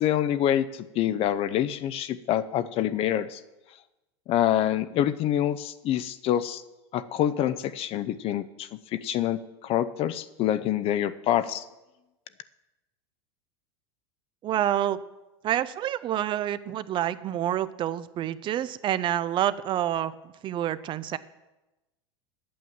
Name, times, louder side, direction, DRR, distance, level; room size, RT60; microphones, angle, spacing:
voice 1, 0.0-3.4 4.3-6.6 6.9-11.6, left 11 dB, 40° left, 13 dB, 0.6 m, -26 dB
voice 2, 14.4-15.0 15.4-20.1 20.4-21.2, right 11 dB, 35° right, 15 dB, 0.5 m, -27 dB
9.1 x 8.6 x 7.3 m, 1.0 s
hypercardioid pair, 105°, 14 cm